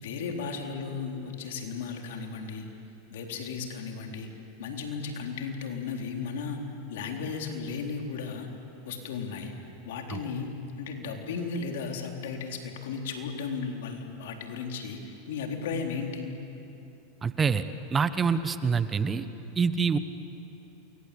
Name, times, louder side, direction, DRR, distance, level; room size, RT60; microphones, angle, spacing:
voice 1, 0.0-2.7 3.1-4.3 4.6-6.6 6.9-8.5 8.8-9.5 9.8-16.3, left 5 dB, 75° left, 2 dB, 3.8 m, -35 dB
voice 2, 17.2-17.6 17.9-19.2 19.6-20.0, right 5 dB, 20° right, 12 dB, 1.1 m, -25 dB
29.0 x 23.0 x 8.5 m, 2.9 s
hypercardioid pair, 115°, 0 cm